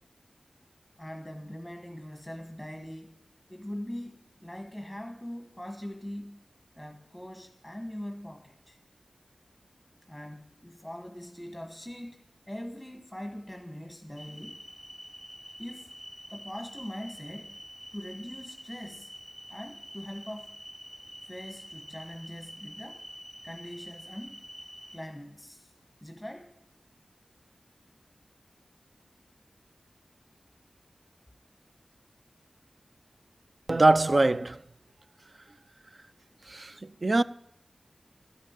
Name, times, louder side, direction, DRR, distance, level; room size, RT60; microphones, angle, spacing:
voice 1, 1.0-3.1 3.5-6.4 6.7-8.8 10.1-14.6 15.6-15.9 16.3-17.6 17.9-19.1 19.5-20.6 21.3-23.1 23.4-24.4 24.9-25.7 26.0-26.5, equal, ahead, 1.4 m, -42 dB
sound 1, 14.2-25.0, equal, 25° right, 4.2 m, -47 dB
voice 2, 33.7-34.6 36.5-37.2, right 2 dB, 50° right, 0.4 m, -23 dB
12.5 x 6.4 x 8.8 m
wide cardioid pair, 55°, 0 cm